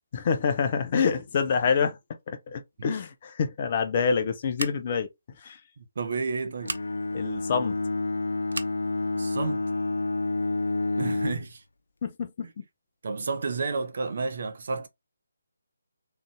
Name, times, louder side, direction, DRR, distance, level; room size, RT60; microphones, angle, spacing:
voice 1, 0.1-2.0 2.3-5.1 5.4-5.6 7.1-7.8 12.0-12.6, left 6 dB, 35° left, 0.9 m, -27 dB
Scissors, 4.5-5.1 6.6-6.9 8.5-8.8, right 3 dB, 70° right, 0.7 m, -35 dB
voice 2, 5.8-6.8 9.1-9.6 11.0-11.6 12.4-12.5 13.0-14.9, right 4 dB, 55° right, 1.1 m, -31 dB
Bowed string instrument, 6.6-11.5, left 3 dB, 70° left, 0.6 m, -29 dB
3.7 x 3.5 x 3.7 m
figure-of-eight pair, 150°, 0 cm